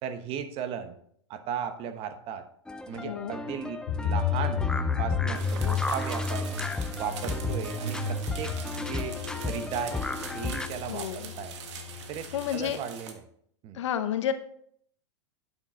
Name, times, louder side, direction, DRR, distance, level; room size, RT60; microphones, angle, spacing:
voice 1, 0.0-1.0 1.3-2.5 2.9-4.6 5.0-6.6 7.0-10.0 10.3-11.5 12.1-13.2 13.6-13.8, right 8 dB, 40° right, 10 dB, 1.0 m, -36 dB
sound 1, 2.7-10.7, left 3 dB, 5° left, 0.4 m, -35 dB
voice 2, 2.9-3.3 10.9-11.3 12.3-12.8 13.7-14.3, left 10 dB, 75° left, 10 dB, 0.9 m, -30 dB
sound 2, 3.9-12.7, left 5 dB, 50° left, 2.4 m, -32 dB
sound 3, 5.3-13.1, right 7 dB, 70° right, 1.4 m, -43 dB
9.0 x 6.3 x 3.7 m, 0.65 s
hypercardioid pair, 125°, 15 cm